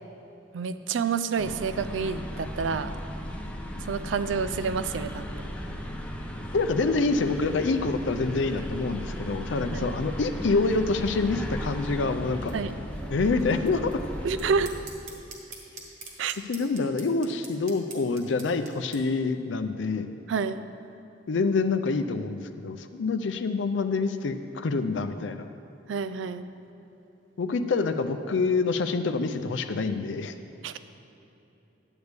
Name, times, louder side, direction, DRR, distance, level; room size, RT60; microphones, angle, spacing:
voice 1, 0.5-2.9 3.8-5.3 9.7-9.9 12.5-12.7 14.2-14.7 16.2-16.3 20.3-20.6 25.9-26.5 30.6-30.8, right 5 dB, 90° right, 12 dB, 0.4 m, -28 dB
sound 1, 1.4-14.8, equal, 5° left, 0.7 m, -36 dB
voice 2, 6.5-12.5 13.1-14.0 16.5-20.1 21.3-25.5 27.4-30.3, left 3 dB, 80° left, 9 dB, 0.5 m, -26 dB
sound 2, 11.9-19.0, right 3 dB, 40° right, 1.3 m, -45 dB
10.5 x 8.0 x 3.4 m, 2.9 s
head